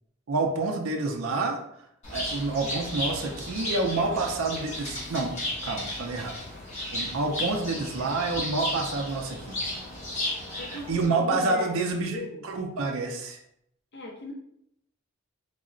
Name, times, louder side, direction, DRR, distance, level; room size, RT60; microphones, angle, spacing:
voice 1, 0.3-1.6 2.1-5.3 5.6-6.4 6.9-9.6 10.7-13.4, right 3 dB, 75° right, 2 dB, 0.5 m, -28 dB
Bird, 2.0-11.0, left 1 dB, 35° left, 1.0 m, -34 dB
voice 2, 4.0-4.6 7.9-8.1 10.6-11.8 12.1-12.4 13.9-14.3, left 2 dB, 55° left, 0 dB, 0.7 m, -39 dB
3.7 x 2.0 x 2.4 m, 0.75 s
head